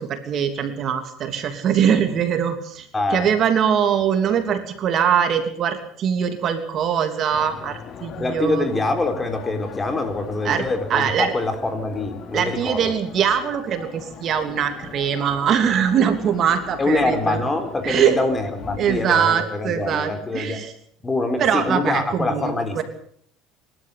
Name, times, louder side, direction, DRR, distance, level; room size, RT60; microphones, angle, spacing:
voice 1, 0.0-8.7 10.4-10.6 10.9-11.3 12.3-17.4 17.8-18.2 18.8-20.7 21.4-22.8, right 8 dB, 45° right, 7 dB, 3.0 m, -22 dB
voice 2, 2.9-3.3 8.2-12.9 16.8-20.7 21.0-22.8, left 2 dB, 15° left, 8 dB, 3.9 m, -24 dB
sound 1, 7.3-19.0, left 7 dB, 45° left, 2.9 m, -40 dB
25.5 x 12.5 x 8.5 m, 0.63 s
supercardioid pair, 115°, 0 cm